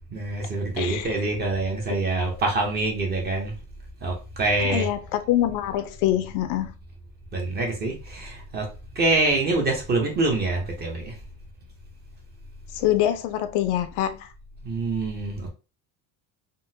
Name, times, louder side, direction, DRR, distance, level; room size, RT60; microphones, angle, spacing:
voice 1, 0.1-3.5 4.0-4.9 7.3-8.7 9.0-11.1 14.6-15.5, right 2 dB, 25° right, 0.6 m, -25 dB
voice 2, 0.8-1.2 1.9-2.0 4.7-6.7 12.8-14.3, left 12 dB, 70° left, 0.5 m, -25 dB
3.7 x 2.1 x 2.6 m
cardioid pair, 170°, 42 cm